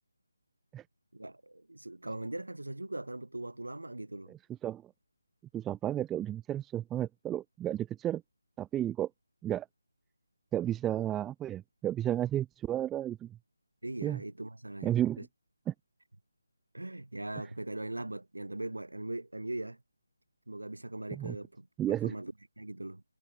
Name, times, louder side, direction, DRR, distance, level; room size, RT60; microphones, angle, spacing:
voice 1, 1.1-4.3 13.8-15.3 16.7-19.8 20.5-23.0, right 2 dB, 70° right, 5.0 m, -40 dB
voice 2, 5.5-8.2 8.6-9.1 9.4-9.7 10.5-13.3 14.0-14.2 14.8-15.2 15.7-15.8 21.2-21.4 21.8-22.1, right 12 dB, 10° right, 0.3 m, -32 dB
figure-of-eight pair, 155°, 0 cm